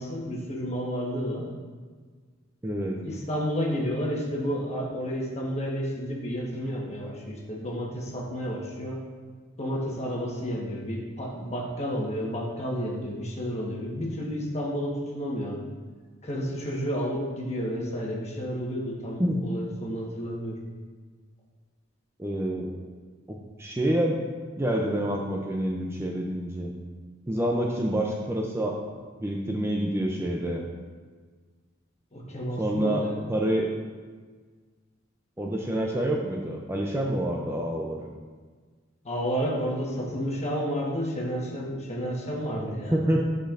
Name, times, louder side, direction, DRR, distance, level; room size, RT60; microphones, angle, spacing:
voice 1, 0.0-1.5 3.0-9.0 9.6-15.6 16.2-20.6 32.1-33.3 39.0-43.0, equal, 35° left, -3 dB, 1.2 m, -31 dB
voice 2, 2.6-3.0 19.2-19.4 22.2-22.8 23.3-24.2 24.6-26.7 27.3-28.8 29.2-30.6 32.6-33.0 33.3-33.7 35.4-38.1 42.5-43.2, right 1 dB, 15° right, 0 dB, 0.4 m, -27 dB
8.8 x 5.1 x 2.5 m, 1.5 s
head